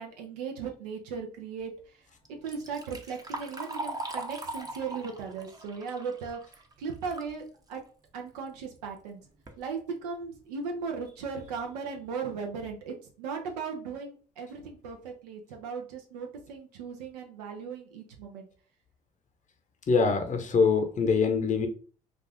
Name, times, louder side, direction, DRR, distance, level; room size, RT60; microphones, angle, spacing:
voice 1, 0.0-2.0 2.3-6.4 6.8-7.8 8.1-9.2 9.6-18.5, right 5 dB, 85° right, 3 dB, 0.6 m, -37 dB
Liquid, 2.3-7.4 7.8-7.9 8.8-8.9 9.3-9.6 10.2-10.3 10.8-10.9 11.3-11.6, right 2 dB, 20° right, 0.7 m, -40 dB
voice 2, 19.9-21.7, left 5 dB, 40° left, 6 dB, 0.8 m, -24 dB
2.4 x 2.4 x 3.3 m, 0.40 s
hypercardioid pair, 60°, 20 cm